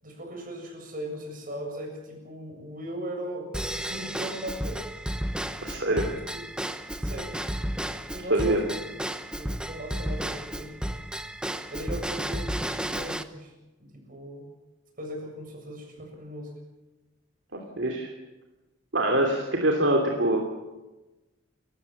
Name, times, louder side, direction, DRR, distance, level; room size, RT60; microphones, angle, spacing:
voice 1, 0.0-4.9 5.9-6.4 7.0-7.4 8.1-8.8 9.3-10.8 11.7-13.5 13.8-14.5 15.0-16.5, equal, 45° right, 2 dB, 7.4 m, -38 dB
Drum kit / Drum / Bell, 3.5-13.2, right 1 dB, 5° right, 1.0 m, -33 dB
voice 2, 5.6-6.0 8.3-8.6 17.5-18.1 18.9-20.5, right 1 dB, 65° right, 1 dB, 2.9 m, -24 dB
30.0 x 15.5 x 7.1 m, 1.1 s
head